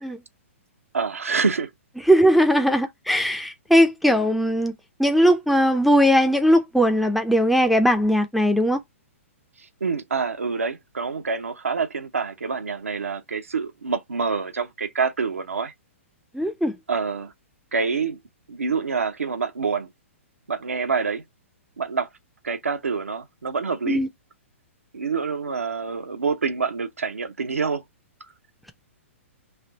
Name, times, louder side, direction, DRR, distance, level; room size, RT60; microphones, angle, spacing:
voice 1, 0.9-1.7 9.6-15.7 16.9-17.3 17.7-18.2 18.5-19.9 20.5-21.2 21.8-22.1 22.4-24.1 24.9-27.8, right 5 dB, 85° right, 0.7 m, -26 dB
voice 2, 2.1-4.7 5.0-8.8 16.3-16.8 23.9-24.1, equal, ahead, 0.4 m, -19 dB
3.4 x 2.5 x 3.8 m
hypercardioid pair, 120°, 7 cm